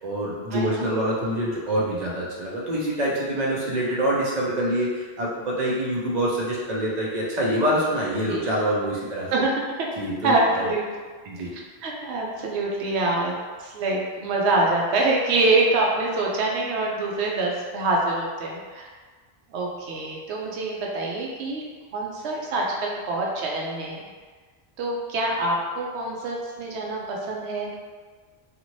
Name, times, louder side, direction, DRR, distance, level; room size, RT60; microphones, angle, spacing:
voice 1, 0.0-9.3 10.0-10.7 11.3-11.5, right 1 dB, 50° right, -5 dB, 0.6 m, -26 dB
voice 2, 0.5-0.9 8.3-8.4 9.3-9.9 10.2-10.8 11.4-18.9 19.5-21.7 21.9-24.1 24.8-27.7, right 2 dB, 85° right, -2 dB, 0.9 m, -25 dB
2.6 x 2.4 x 3.0 m, 1.4 s
omnidirectional pair, 1.1 m